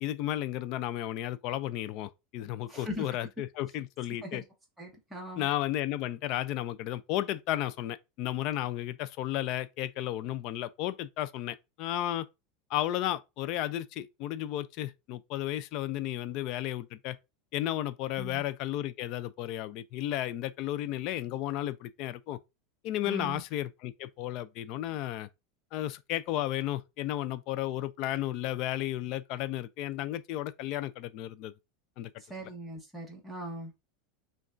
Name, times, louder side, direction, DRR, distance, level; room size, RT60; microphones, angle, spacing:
voice 1, 0.0-4.4 5.3-12.3 12.7-17.2 17.5-22.4 22.8-25.3 25.7-31.5 32.0-32.1 32.4-32.5, left 13 dB, 45° left, 0.3 m, -33 dB
voice 2, 2.7-3.1 4.2-4.4 4.8-5.5 18.2-18.4 23.0-23.4 32.2-33.7, equal, 5° right, 1.1 m, -40 dB
6.0 x 2.3 x 2.5 m
supercardioid pair, 160°, 0 cm